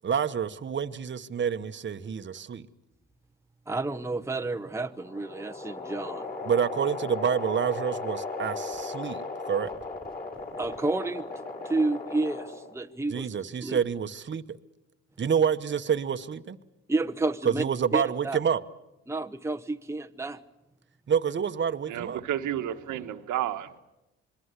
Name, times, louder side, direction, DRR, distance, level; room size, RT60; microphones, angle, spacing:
voice 1, 0.0-2.7 6.4-9.7 13.1-14.6 15.2-16.6 17.4-18.6 21.1-22.2, right 7 dB, 40° right, 10 dB, 1.1 m, -28 dB
voice 2, 3.7-6.3 10.6-11.3 11.6-13.8 16.9-17.6 17.9-18.4 19.1-20.4, right 2 dB, 10° right, 9 dB, 1.0 m, -30 dB
sound 1, 4.6-12.8, left 3 dB, 30° left, 5.7 m, -37 dB
voice 3, 21.9-23.8, right 11 dB, 85° right, 7 dB, 1.5 m, -31 dB
26.5 x 22.0 x 8.2 m, 0.97 s
cardioid pair, 90°, 30 cm